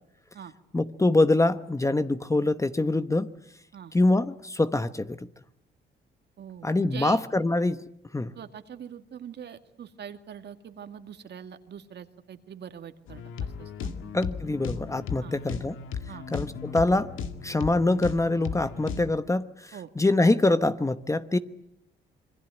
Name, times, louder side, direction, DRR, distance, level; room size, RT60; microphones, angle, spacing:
voice 1, 0.7-3.3 3.9-5.3 6.6-7.8 8.1-8.3 14.1-15.8 16.3-17.1 17.4-21.4, left 2 dB, 15° left, 1.1 m, -24 dB
voice 2, 6.4-7.2 8.4-13.9 15.2-15.4 16.1-16.3 19.7-19.9, right 8 dB, 60° right, 2.1 m, -43 dB
sound 1, 13.1-19.1, left 6 dB, 85° left, 2.0 m, -36 dB
27.0 x 22.5 x 9.2 m
cardioid pair, 90°, 20 cm